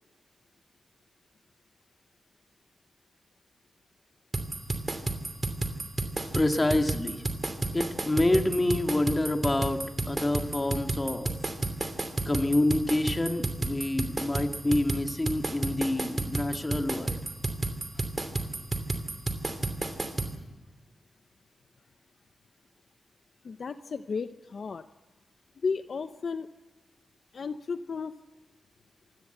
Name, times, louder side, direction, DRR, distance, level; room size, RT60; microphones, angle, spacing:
sound 1, 4.3-20.3, right 2 dB, 30° right, 2.7 m, -31 dB
voice 1, 6.3-7.2 7.7-11.3 12.3-17.2, left 1 dB, 20° left, 6 dB, 1.9 m, -27 dB
voice 2, 23.4-24.9 25.6-26.5 27.3-28.2, left 5 dB, 60° left, 10 dB, 0.8 m, -33 dB
26.0 x 17.0 x 7.9 m, 1.1 s
wide cardioid pair, 125°, 0 cm